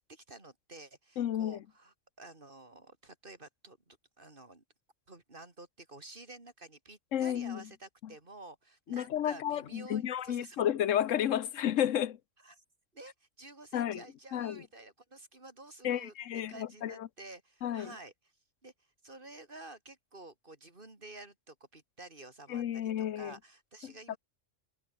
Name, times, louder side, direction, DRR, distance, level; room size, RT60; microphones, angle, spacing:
voice 1, 0.0-4.6 5.1-10.6 12.4-12.6 12.9-16.1 16.5-18.1 18.6-18.7 19.0-24.2, right 2 dB, 45° right, 3.5 m, -51 dB
voice 2, 1.2-1.6 7.1-7.6 8.0-8.1 8.9-12.2 13.7-14.0 14.3-14.6 15.8-17.1 17.6-17.9 22.5-23.3 23.8-24.2, left 10 dB, 85° left, 1.2 m, -32 dB
omnidirectional pair, 1.3 m